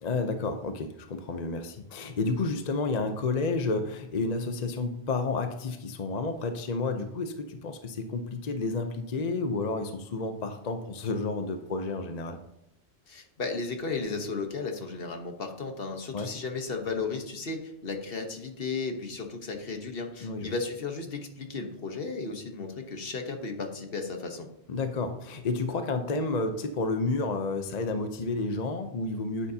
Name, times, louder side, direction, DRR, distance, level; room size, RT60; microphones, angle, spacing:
voice 1, 0.0-12.4 16.1-16.3 20.2-20.5 24.7-29.5, left 3 dB, 45° left, 6 dB, 0.7 m, -31 dB
voice 2, 13.1-24.5, left 4 dB, 60° left, 4 dB, 1.3 m, -34 dB
9.8 x 9.2 x 2.8 m, 0.79 s
omnidirectional pair, 1.1 m